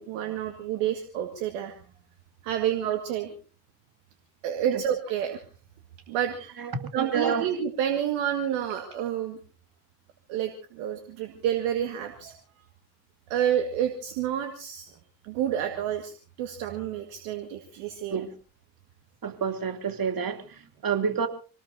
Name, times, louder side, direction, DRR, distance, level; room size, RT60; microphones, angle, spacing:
voice 1, 0.0-1.7 2.4-3.3 4.4-5.4 6.1-6.6 6.9-9.4 10.3-12.3 13.3-14.9 15.2-18.2, right 10 dB, 85° right, 6 dB, 1.8 m, -29 dB
voice 2, 6.6-7.5 18.1-18.3 19.2-21.3, right 6 dB, 50° right, 7 dB, 2.8 m, -29 dB
26.0 x 19.0 x 2.7 m, 0.37 s
hypercardioid pair, 55°, 46 cm